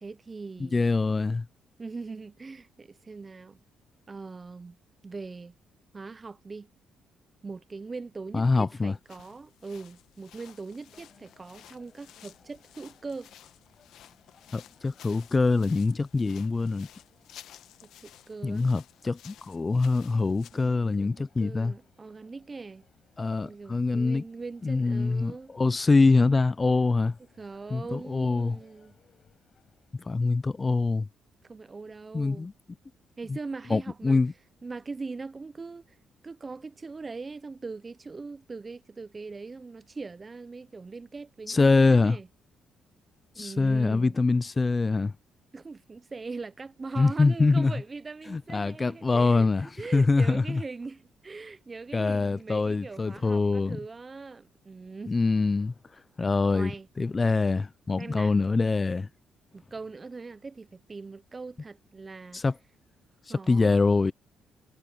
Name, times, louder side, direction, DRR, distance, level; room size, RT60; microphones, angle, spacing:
voice 1, 0.0-0.8 1.8-3.6 4.1-5.5 5.9-6.7 7.4-13.3 17.8-18.7 20.5-22.9 23.4-25.5 27.4-29.0 31.4-32.5 33.2-34.2 34.6-36.0 36.2-42.3 43.3-44.2 45.5-55.2 56.5-56.9 58.0-58.4 59.5-62.4 63.3-63.8, right 4 dB, 30° right, 0.5 m, -41 dB
voice 2, 0.6-1.5 8.3-9.0 14.5-16.9 18.4-21.7 23.2-24.2 24.6-27.2 27.7-28.6 30.1-31.1 32.1-32.5 33.7-34.3 41.5-42.2 43.4-45.1 47.0-47.7 48.3-49.7 49.9-50.6 51.9-53.8 55.1-55.7 56.2-56.7 57.0-59.1 62.3-62.5 63.3-64.1, left 3 dB, 25° left, 0.5 m, -24 dB
sound 1, 8.9-20.7, left 11 dB, 80° left, 1.1 m, -54 dB
sound 2, 10.8-30.2, left 6 dB, 50° left, 5.8 m, -65 dB
cardioid pair, 90°, 0 cm